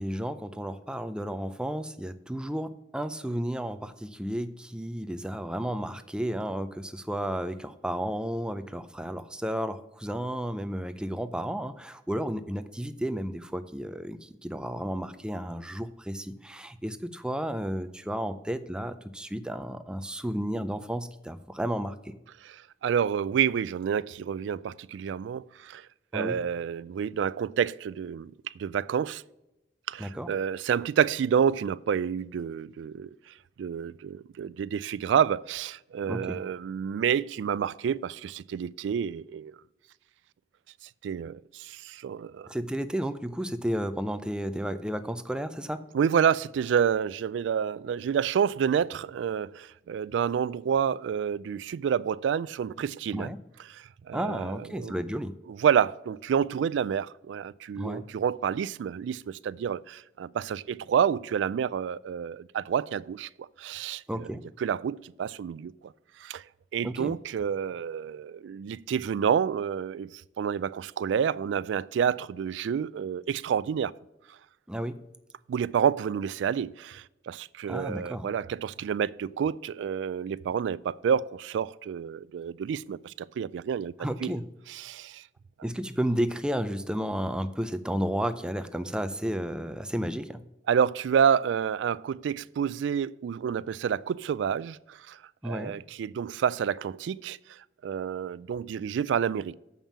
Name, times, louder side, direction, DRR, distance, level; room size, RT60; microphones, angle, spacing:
voice 1, 0.0-22.1 26.1-26.4 30.0-30.3 36.0-36.4 42.5-45.8 53.1-53.4 54.1-55.3 57.8-58.0 64.1-64.4 66.8-67.1 74.7-75.0 77.7-78.3 84.0-84.4 85.6-90.4 95.4-95.7, equal, 5° right, 0.4 m, -32 dB
voice 2, 22.4-25.9 26.1-29.2 29.9-39.5 41.0-42.5 45.9-53.3 53.6-55.0 55.5-64.3 64.6-65.9 66.2-66.4 66.7-73.9 75.5-84.4 84.7-85.2 90.7-95.2 95.4-99.6, right 7 dB, 80° right, 0.3 m, -29 dB
7.2 x 5.4 x 7.3 m
head